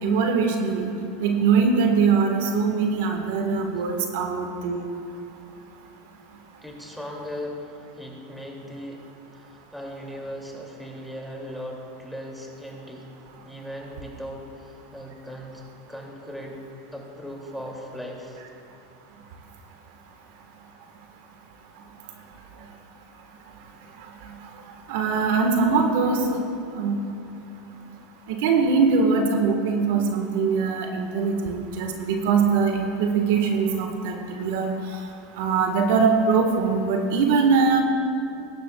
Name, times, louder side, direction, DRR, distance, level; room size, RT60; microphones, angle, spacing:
voice 1, 0.0-4.8 24.2-24.3 24.9-26.4 26.7-27.0 28.3-35.0 35.4-37.8, right 5 dB, 70° right, 3 dB, 1.3 m, -22 dB
voice 2, 6.6-9.0 9.3-13.1 13.4-16.6 16.9-18.4, equal, ahead, -1 dB, 2.3 m, -38 dB
19.5 x 10.5 x 2.3 m, 2.8 s
supercardioid pair, 110°, 0 cm